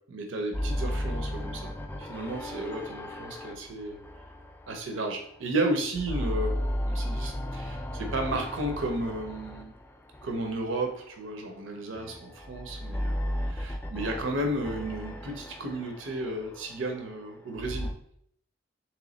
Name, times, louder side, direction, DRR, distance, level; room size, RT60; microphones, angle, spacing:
voice 1, 0.1-1.7 2.0-4.0 4.7-6.6 6.9-9.7 10.2-17.9, right 1 dB, 70° right, 3 dB, 0.6 m, -33 dB
sound 1, 0.5-5.5 5.8-11.2 11.9-17.9, equal, 10° left, 0.3 m, -35 dB
3.4 x 3.0 x 3.9 m, 0.67 s
head